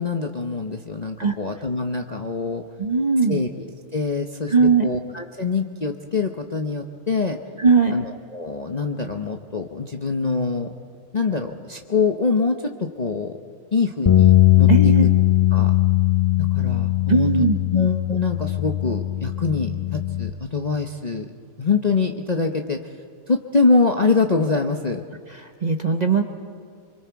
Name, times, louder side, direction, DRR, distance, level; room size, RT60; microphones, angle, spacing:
voice 1, 0.0-2.6 3.3-3.6 3.9-4.5 4.8-7.4 7.9-10.7 11.1-12.7 13.0-13.4 13.7-14.9 15.5-15.7 16.5-17.3 17.7-21.3 21.6-22.8 23.3-25.0, left 4 dB, 35° left, 3 dB, 0.8 m, -24 dB
voice 2, 2.8-3.4 4.5-4.9 7.6-8.0 14.7-15.0 17.1-17.6 25.3-26.2, right 4 dB, 35° right, 5 dB, 0.9 m, -19 dB
sound 1, 14.1-20.3, left 13 dB, 55° left, 0.3 m, -19 dB
26.0 x 24.0 x 4.7 m, 2.1 s
omnidirectional pair, 1.6 m